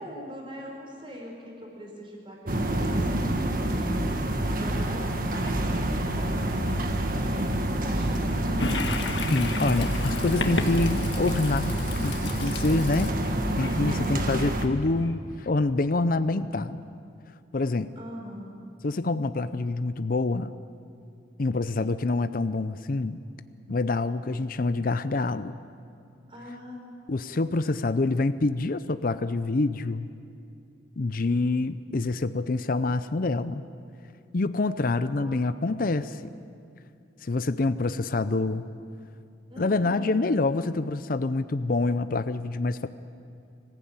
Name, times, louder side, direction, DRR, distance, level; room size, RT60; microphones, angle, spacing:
voice 1, 0.0-7.4 7.7-8.8 13.8-14.3 17.9-18.6 26.3-26.8 35.2-35.5 39.5-40.2, equal, 30° right, -1 dB, 5.1 m, -42 dB
sound 1, 2.5-14.7, right 1 dB, 50° right, 1.7 m, -27 dB
Toilet flush, 8.6-15.1, left 3 dB, 80° left, 1.6 m, -34 dB
voice 2, 9.3-11.7 12.0-13.2 13.6-16.8 17.5-17.9 18.8-20.6 21.4-23.2 23.7-25.5 27.1-30.1 31.0-33.6 34.3-36.2 37.2-38.7 39.6-42.9, left 3 dB, 50° left, 12 dB, 0.6 m, -26 dB
25.0 x 15.5 x 8.9 m, 2.5 s
head